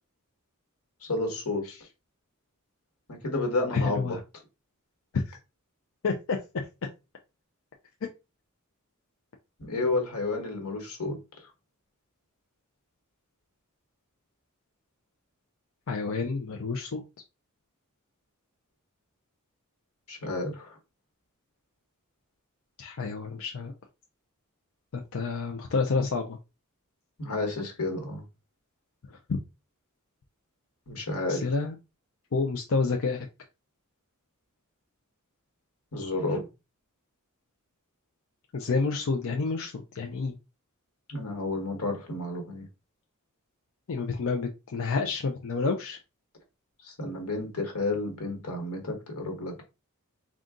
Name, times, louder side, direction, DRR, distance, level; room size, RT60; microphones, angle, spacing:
voice 1, 1.1-1.6 3.1-4.2 9.6-11.2 20.1-20.8 27.2-28.2 30.9-31.4 35.9-36.5 41.1-42.7 46.8-49.6, left 2 dB, 90° left, 1.4 m, -31 dB
voice 2, 3.7-4.2 5.1-5.4 6.0-6.6 8.0-8.1 15.9-17.0 22.8-23.7 24.9-26.4 31.3-31.7 32.3-33.3 38.5-40.4 43.9-46.0, left 4 dB, 65° left, 0.5 m, -29 dB
3.8 x 2.4 x 3.7 m
head